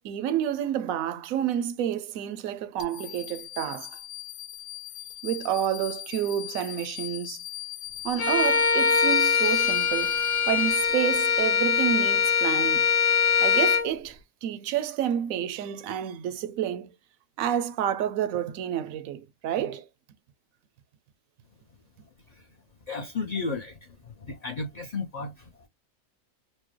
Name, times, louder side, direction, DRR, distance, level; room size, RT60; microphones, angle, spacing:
voice 1, 0.0-4.0 5.2-7.4 8.0-10.2 10.5-12.9 13.4-16.9 17.4-19.9, right 10 dB, 90° right, 1.0 m, -29 dB
sound 1, 2.8-11.3, left 14 dB, 85° left, 1.2 m, -39 dB
Bowed string instrument, 8.2-13.9, left 6 dB, 65° left, 1.4 m, -22 dB
voice 2, 22.9-25.7, left 4 dB, 50° left, 0.5 m, -34 dB
4.4 x 2.1 x 2.9 m
omnidirectional pair, 1.4 m